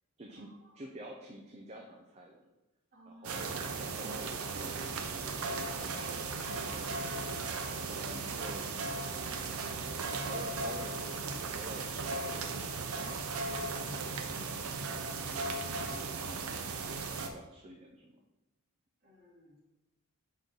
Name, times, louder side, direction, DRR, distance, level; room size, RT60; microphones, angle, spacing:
voice 1, 0.2-2.5 3.1-6.3 6.7-9.8 10.3-14.7 15.2-18.2, right 1 dB, 30° right, -1 dB, 0.5 m, -50 dB
voice 2, 2.9-3.6 19.0-19.6, equal, 45° right, -6 dB, 2.1 m, -59 dB
sound 1, 3.2-17.3, right 4 dB, 75° right, 0.6 m, -37 dB
6.1 x 4.1 x 3.8 m, 0.98 s
head